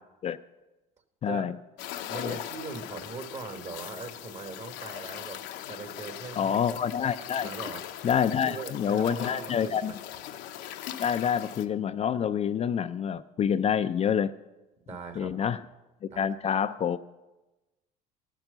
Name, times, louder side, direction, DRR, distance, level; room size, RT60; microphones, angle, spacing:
voice 1, 1.2-1.5 2.2-2.4 6.4-7.5 8.0-9.9 11.0-14.3 15.2-15.6 16.2-17.0, left 8 dB, 35° left, 11 dB, 0.4 m, -27 dB
sound 1, 1.8-11.6, left 11 dB, 75° left, 0.7 m, -40 dB
voice 2, 2.1-5.4 5.7-6.7 7.0-7.1 7.4-8.1 8.4-9.9 14.9-15.6 16.1-16.3, right 4 dB, 40° right, 6 dB, 1.5 m, -40 dB
13.5 x 6.1 x 6.6 m, 1.1 s
supercardioid pair, 75°, 18 cm